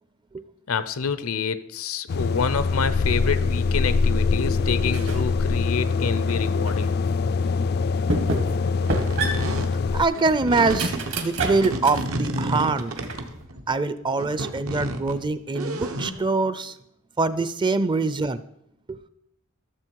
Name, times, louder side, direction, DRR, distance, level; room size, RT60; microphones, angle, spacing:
voice 1, 0.7-7.0, left 5 dB, 80° left, 0.6 m, -27 dB
sound 1, 2.1-10.1, left 4 dB, 50° left, 0.3 m, -24 dB
sound 2, 4.9-5.3 5.8-6.9 7.4-7.5 8.1-8.6 8.9-12.1 12.5-13.4, right 2 dB, 60° right, 1.5 m, -30 dB
sound 3, 8.3-9.7 10.1-13.7 14.1-16.1, right 1 dB, 80° right, 1.1 m, -31 dB
voice 2, 9.9-10.9 11.2-12.9 13.7-16.7 17.2-18.4 18.9-19.0, right 3 dB, 20° right, 0.5 m, -24 dB
13.5 x 7.0 x 4.6 m
head